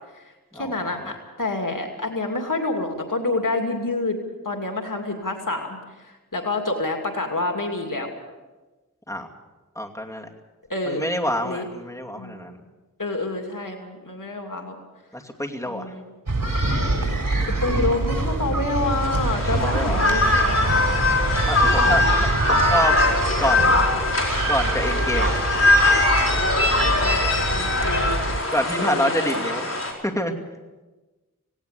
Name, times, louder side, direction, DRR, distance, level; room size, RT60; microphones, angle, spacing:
voice 1, 0.5-4.2 4.4-5.7 6.3-8.1 10.7-11.1 11.4-11.7 12.2-12.4 13.0-14.7 15.6-16.1 17.6-20.7 21.6-21.9 27.0-29.5, left 2 dB, 70° left, 3 dB, 2.6 m, -28 dB
voice 2, 9.8-10.3 10.9-12.6 15.1-15.9 19.4-20.0 21.5-22.0 22.5-22.9 23.4-23.7 24.5-25.3 28.5-29.7 30.0-30.3, left 1 dB, 10° left, 2 dB, 2.5 m, -27 dB
sound 1, 16.3-28.4, right 2 dB, 80° right, 4.1 m, -25 dB
sound 2, 18.8-29.9, left 2 dB, 50° left, 4.8 m, -21 dB
18.0 x 17.5 x 8.3 m, 1.2 s
wide cardioid pair, 45°, 33 cm